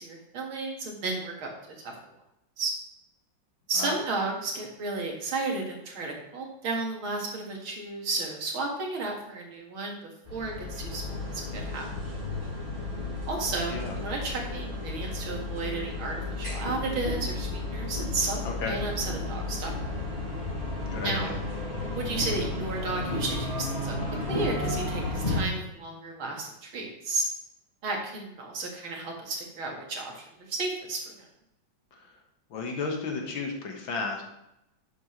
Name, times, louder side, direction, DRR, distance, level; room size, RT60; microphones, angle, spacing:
voice 1, 0.0-1.5 1.8-1.9 2.6-2.7 3.7-11.9 13.3-19.8 21.0-21.4 21.8-24.0 24.3-27.3 27.8-31.0, right 3 dB, 90° right, 0 dB, 2.8 m, -33 dB
sound 1, 10.2-25.4, left 2 dB, 20° left, 4.2 m, -33 dB
voice 2, 18.4-18.8 20.9-21.4 31.9-32.1 32.5-34.2, left 4 dB, 75° left, 1 dB, 2.4 m, -33 dB
12.0 x 8.1 x 3.3 m, 0.85 s
omnidirectional pair, 2.2 m